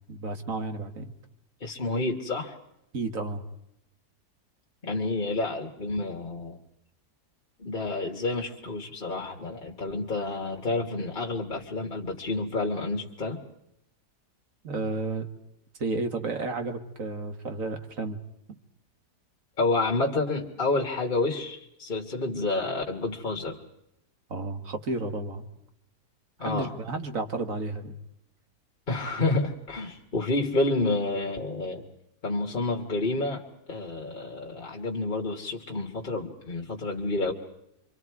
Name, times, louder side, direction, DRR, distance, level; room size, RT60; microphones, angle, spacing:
voice 1, 0.1-1.1 2.9-3.4 14.6-15.3 15.8-18.2 18.5-18.6 24.3-25.4 26.4-27.9, right 3 dB, 55° right, 7 dB, 2.0 m, -32 dB
voice 2, 1.6-2.6 4.8-6.6 7.6-13.4 19.6-23.6 26.4-26.7 28.9-31.9 32.2-37.3, left 2 dB, 30° left, 1 dB, 1.7 m, -29 dB
28.5 x 24.5 x 4.7 m, 0.79 s
omnidirectional pair, 1.7 m